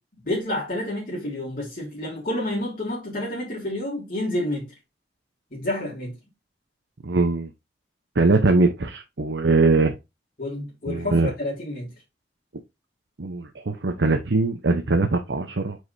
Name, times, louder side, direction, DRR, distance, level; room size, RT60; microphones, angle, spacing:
voice 1, 0.3-4.7 5.5-6.1 10.4-11.9, left 1 dB, 50° left, 2.7 m, -29 dB
voice 2, 7.0-7.5 8.2-9.9 10.9-11.3 13.2-15.8, right 3 dB, 85° right, 0.8 m, -21 dB
8.0 x 4.8 x 2.7 m
head